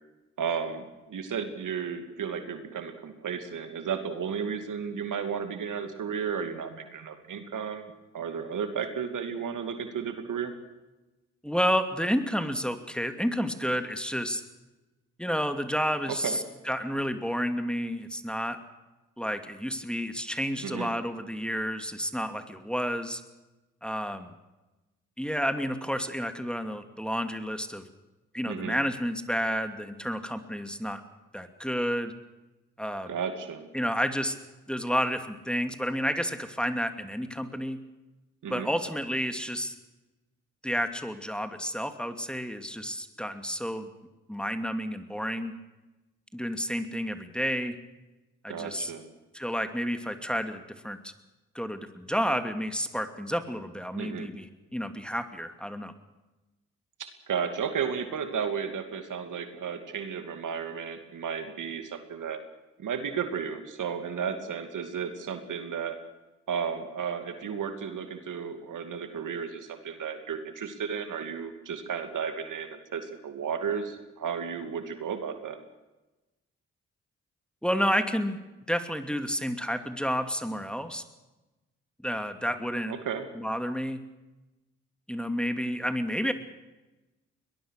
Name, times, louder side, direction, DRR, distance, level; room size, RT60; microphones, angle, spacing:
voice 1, 0.4-10.5 16.1-16.4 20.6-20.9 28.5-28.8 33.1-33.7 38.4-38.7 48.5-49.1 53.9-54.3 57.0-62.4 62.8-66.0 66.5-75.6 82.9-83.3, right 7 dB, 70° right, 7 dB, 2.6 m, -33 dB
voice 2, 11.4-14.4 15.2-18.6 19.2-23.2 23.8-24.3 25.2-27.8 28.3-31.0 31.3-32.1 32.8-33.2 33.7-34.4 34.7-37.8 38.5-39.7 40.6-43.9 44.3-45.5 46.3-47.8 48.4-48.9 49.3-51.1 51.5-55.9 77.6-78.4 78.7-81.0 82.0-82.9 83.3-84.0 85.1-86.3, equal, 5° left, 8 dB, 2.5 m, -30 dB
22.0 x 20.0 x 6.6 m, 1.1 s
supercardioid pair, 45°, 32 cm